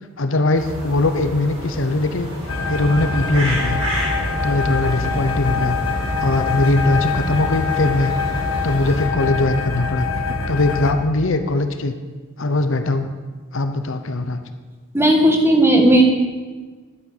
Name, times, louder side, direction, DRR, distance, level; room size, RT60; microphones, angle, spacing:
voice 1, 0.2-2.3 2.7-3.8 4.4-5.8 6.2-8.1 8.6-10.1 10.5-11.9 12.4-13.1 13.5-14.4, left 2 dB, 65° left, 8 dB, 0.9 m, -20 dB
sound 1, 0.5-9.1, equal, 30° right, 4.2 m, -31 dB
sound 2, 2.5-10.9, left 4 dB, 85° left, 1.6 m, -24 dB
voice 2, 14.9-16.0, right 1 dB, 10° right, 2 dB, 1.4 m, -14 dB
11.5 x 9.1 x 6.7 m, 1.4 s
head